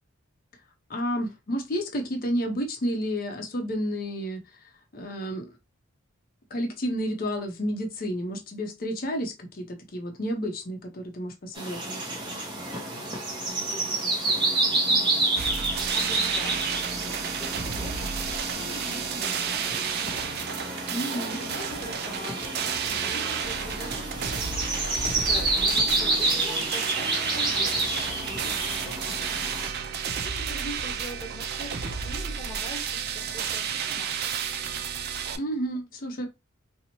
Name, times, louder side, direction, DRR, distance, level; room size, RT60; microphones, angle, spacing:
voice 1, 0.9-4.4 4.9-5.5 6.5-12.0 20.9-21.4 35.3-36.3, equal, 45° left, 0.6 m, -31 dB
sound 1, 11.6-29.7, right 2 dB, 20° right, 0.7 m, -29 dB
voice 2, 12.7-20.5 21.1-29.7 30.2-34.3, equal, 20° left, 0.9 m, -44 dB
sound 2, 15.4-35.4, right 7 dB, 50° right, 0.3 m, -32 dB
2.8 x 2.0 x 2.8 m
head